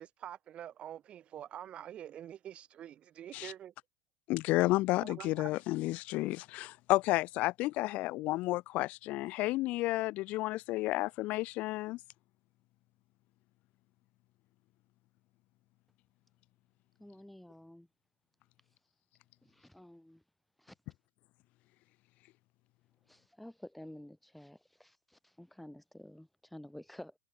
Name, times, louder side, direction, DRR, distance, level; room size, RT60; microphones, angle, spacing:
voice 1, 0.0-3.7 5.0-5.5, right 10 dB, 40° right, 3.6 m, -46 dB
voice 2, 4.3-12.0, left 19 dB, 55° left, 0.9 m, -31 dB
voice 3, 17.0-17.9 19.4-20.2 20.6-20.8 23.1-27.2, left 1 dB, 5° left, 5.4 m, -51 dB
hypercardioid pair, 95°, 3 cm